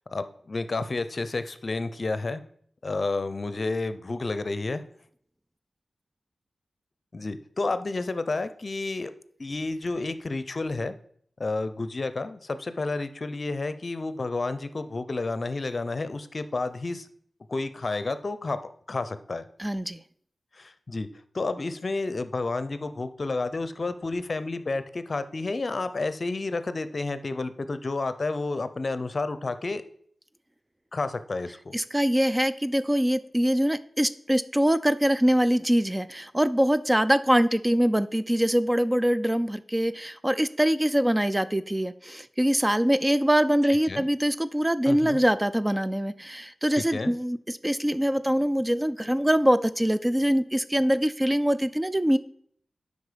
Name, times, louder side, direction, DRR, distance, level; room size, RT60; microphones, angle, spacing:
voice 1, 0.1-2.4 2.8-4.8 7.1-9.1 9.4-11.0 11.4-17.1 17.5-18.6 18.9-19.4 20.5-21.1 21.3-29.8 30.9-31.7 43.9-44.1 44.9-45.2 46.7-47.1, left 3 dB, 50° left, 12 dB, 0.6 m, -30 dB
voice 2, 19.6-20.0 31.7-52.2, equal, 15° right, 13 dB, 0.4 m, -23 dB
8.0 x 5.3 x 5.1 m, 0.64 s
cardioid pair, 50°, 0 cm